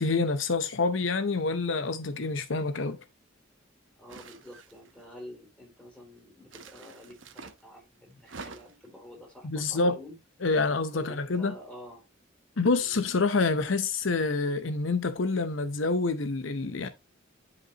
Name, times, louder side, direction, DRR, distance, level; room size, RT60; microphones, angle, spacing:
voice 1, 0.0-3.0 9.4-10.0 10.4-11.5 12.6-16.9, left 3 dB, 75° left, 0.8 m, -27 dB
voice 2, 4.0-10.2 10.9-12.0 12.8-13.0, equal, 5° left, 4.1 m, -48 dB
sound 1, 4.1-5.0 6.5-7.6 8.2-8.9, right 4 dB, 75° right, 1.0 m, -47 dB
11.0 x 5.2 x 2.9 m
head